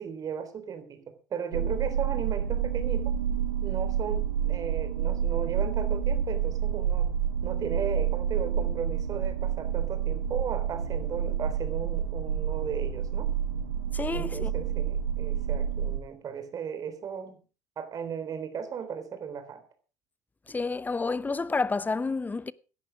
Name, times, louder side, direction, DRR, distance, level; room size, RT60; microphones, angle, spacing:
voice 1, 0.0-3.2 3.6-7.1 7.4-13.3 14.1-17.4 17.8-19.6, right 7 dB, 40° right, 3.7 m, -36 dB
sound 1, 1.5-16.0, right 8 dB, 85° right, 1.1 m, -29 dB
voice 2, 13.9-14.5 20.5-22.5, left 4 dB, 20° left, 0.8 m, -29 dB
17.0 x 10.5 x 5.0 m
figure-of-eight pair, 60°, 9 cm